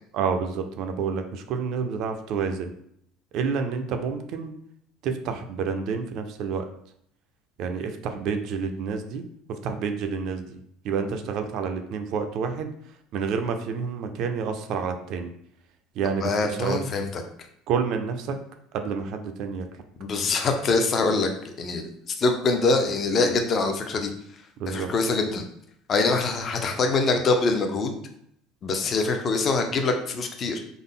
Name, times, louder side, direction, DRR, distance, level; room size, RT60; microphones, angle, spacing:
voice 1, 0.1-2.7 3.3-4.5 5.0-6.7 7.6-9.2 9.6-10.6 10.8-12.7 13.1-15.3 15.9-16.9 17.7-18.4 18.7-19.7 24.6-24.9, right 6 dB, 50° right, 6 dB, 0.4 m, -29 dB
voice 2, 16.2-17.2 20.0-21.9 22.2-24.1 24.7-25.4 25.9-28.0 28.6-30.6, left 3 dB, 30° left, 5 dB, 0.4 m, -24 dB
3.6 x 2.0 x 3.7 m, 0.70 s
cardioid pair, 155°, 0 cm